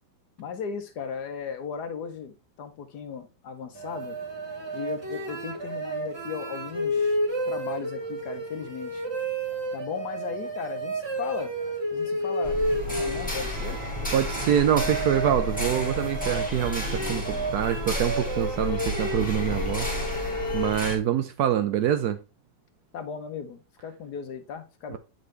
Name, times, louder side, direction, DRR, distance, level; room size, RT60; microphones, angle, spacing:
voice 1, 0.4-4.2 4.7-7.2 7.5-9.0 9.7-11.5 11.9-12.6 12.9-13.8 22.9-25.0, left 6 dB, 65° left, 1.1 m, -36 dB
sound 1, 3.8-20.7, right 1 dB, 25° right, 0.5 m, -31 dB
sound 2, 12.4-21.0, left 1 dB, 5° left, 1.3 m, -32 dB
voice 2, 14.1-22.2 24.9-25.0, right 10 dB, 75° right, 0.9 m, -26 dB
8.5 x 3.9 x 3.1 m
omnidirectional pair, 2.2 m